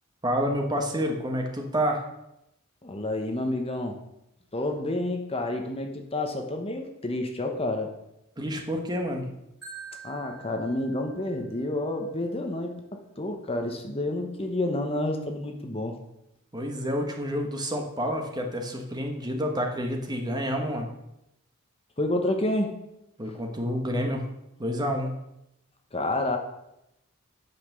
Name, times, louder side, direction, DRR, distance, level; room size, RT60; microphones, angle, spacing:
voice 1, 0.2-2.0 8.4-9.3 16.5-20.9 23.2-24.3 24.6-25.1, equal, 20° right, 2 dB, 1.3 m, -29 dB
voice 2, 2.8-4.0 4.5-7.9 10.0-16.0 22.0-22.8 23.2-23.4 25.9-26.4, left 1 dB, 25° left, 4 dB, 1.0 m, -29 dB
Marimba xylophone, 9.6-11.7, right 6 dB, 5° right, 3.8 m, -46 dB
9.1 x 5.8 x 6.8 m, 0.85 s
head